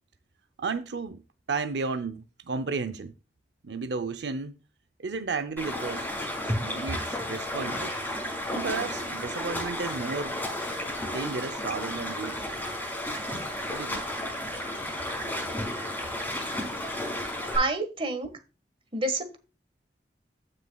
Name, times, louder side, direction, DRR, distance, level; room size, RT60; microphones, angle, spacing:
voice 1, 0.6-1.2 1.5-3.1 3.6-4.6 5.0-6.1 6.6-7.9 8.5-10.4 11.1-12.4 13.7-14.0, right 4 dB, 75° right, 0.6 m, -33 dB
Stream, 5.6-17.6, left 1 dB, 10° left, 5.7 m, -33 dB
voice 2, 17.5-18.3 18.9-19.4, right 2 dB, 30° right, 1.5 m, -28 dB
15.0 x 6.5 x 2.3 m
head